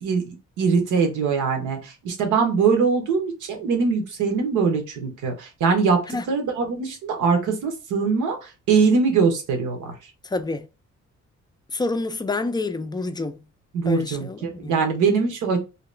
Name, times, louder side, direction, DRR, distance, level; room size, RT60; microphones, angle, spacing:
voice 1, 0.0-6.0 6.3-9.9 13.7-15.6, right 5 dB, 90° right, 0.9 m, -22 dB
voice 2, 10.2-10.7 11.7-13.4 13.9-14.8, left 3 dB, 15° left, 0.3 m, -28 dB
2.8 x 2.3 x 3.2 m
cardioid pair, 90°, 30 cm